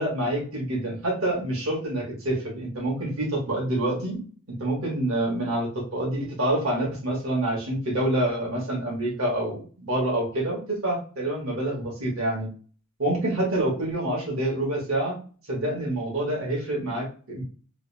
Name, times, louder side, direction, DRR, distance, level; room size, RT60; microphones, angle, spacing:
voice 1, 0.0-4.2 4.6-12.5 13.0-15.2 15.5-17.4, right 1 dB, 70° right, -4 dB, 1.4 m, -27 dB
3.2 x 2.5 x 3.3 m, 0.41 s
head